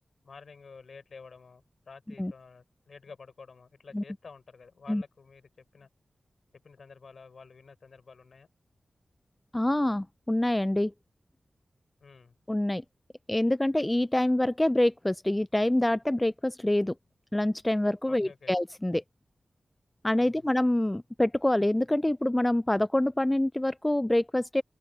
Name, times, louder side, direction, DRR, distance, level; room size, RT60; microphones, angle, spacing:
voice 1, 0.2-5.9 6.6-8.5 12.0-12.3 18.1-18.5 20.1-20.5, left 4 dB, 70° left, 5.1 m, -50 dB
voice 2, 9.5-10.9 12.5-12.8 13.3-16.9 17.3-19.0 20.0-24.6, left 1 dB, 15° left, 0.3 m, -26 dB
open air
wide cardioid pair, 85°, 0 cm